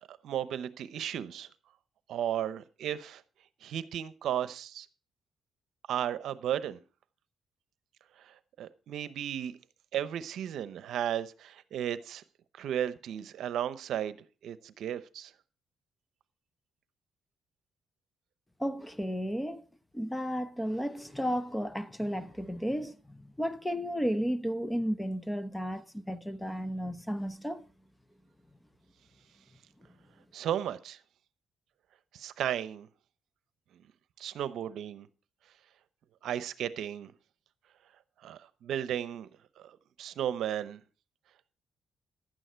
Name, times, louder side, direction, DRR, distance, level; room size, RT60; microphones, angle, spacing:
voice 1, 0.2-1.5 2.1-3.2 3.6-4.9 5.9-6.8 8.6-9.6 9.9-12.2 12.6-14.2 14.4-15.3 30.3-31.0 32.1-32.9 34.2-35.1 36.2-37.1 38.2-39.3 40.0-40.8, right 10 dB, 75° right, 0.8 m, -34 dB
voice 2, 18.6-19.6 19.9-27.6, equal, 5° left, 0.9 m, -33 dB
11.5 x 9.1 x 4.5 m
cardioid pair, 90°, 0 cm